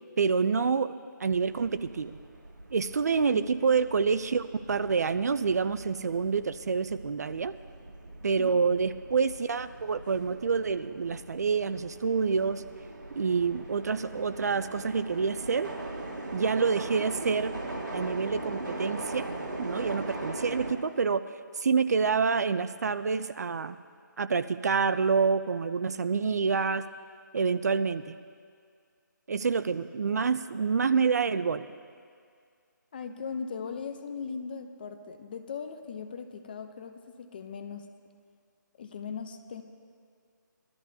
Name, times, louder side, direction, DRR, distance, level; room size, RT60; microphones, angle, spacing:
voice 1, 0.2-0.9 1.2-2.2 2.7-7.5 8.2-12.6 13.2-15.7 16.3-17.6 17.9-19.3 19.6-21.2 21.6-23.8 24.2-26.8 27.3-28.2 29.3-31.7, right 5 dB, 55° right, 12 dB, 0.5 m, -27 dB
sound 1, 1.2-20.7, right 2 dB, 75° right, 2.6 m, -40 dB
voice 2, 32.9-37.9 38.8-39.6, left 6 dB, 30° left, 7 dB, 0.6 m, -39 dB
21.5 x 13.0 x 2.8 m, 2.2 s
hypercardioid pair, 165°, 11 cm